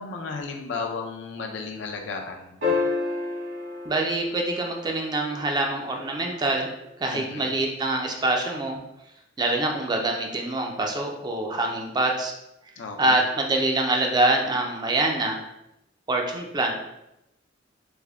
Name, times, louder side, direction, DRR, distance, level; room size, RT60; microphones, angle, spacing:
voice 1, 0.0-2.6 7.1-7.5 12.8-13.2, left 4 dB, 70° left, 3 dB, 0.5 m, -34 dB
sound 1, 2.6-5.1 7.4-7.5, left 4 dB, 75° right, 1.4 m, -29 dB
voice 2, 3.9-6.7 7.0-8.8 9.4-12.3 13.0-15.4 16.1-16.7, right 2 dB, 20° right, 1 dB, 0.4 m, -25 dB
3.4 x 2.1 x 3.4 m, 0.87 s
head